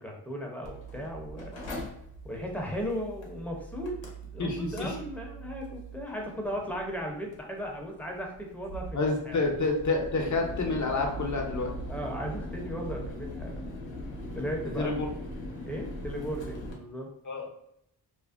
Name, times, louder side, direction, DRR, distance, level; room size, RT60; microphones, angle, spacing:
voice 1, 0.0-1.9 2.2-4.0 4.3-9.5 11.9-13.6 14.3-14.9 15.6-17.1, equal, 5° left, 0 dB, 0.6 m, -36 dB
Mechanical fan, 0.6-16.7, equal, 80° left, 0.7 m, -41 dB
voice 2, 4.4-4.9 8.9-11.7 14.8-15.1 17.2-17.5, left 3 dB, 40° left, 1 dB, 0.7 m, -28 dB
2.5 x 2.1 x 2.4 m, 0.74 s
cardioid pair, 50°, 44 cm